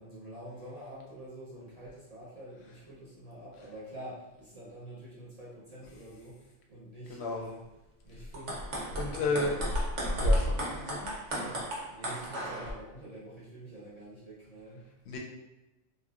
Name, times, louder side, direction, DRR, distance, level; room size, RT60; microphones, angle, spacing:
voice 1, 0.0-7.6 8.0-9.8 11.4-14.9, right 1 dB, 40° right, -8 dB, 0.7 m, -47 dB
sound 1, 8.2-12.7, equal, 70° right, 1.0 m, -32 dB
voice 2, 9.0-9.5 10.2-11.1 15.1-15.2, left 3 dB, 70° left, -1 dB, 0.8 m, -32 dB
2.8 x 2.6 x 2.3 m, 1.0 s
omnidirectional pair, 1.2 m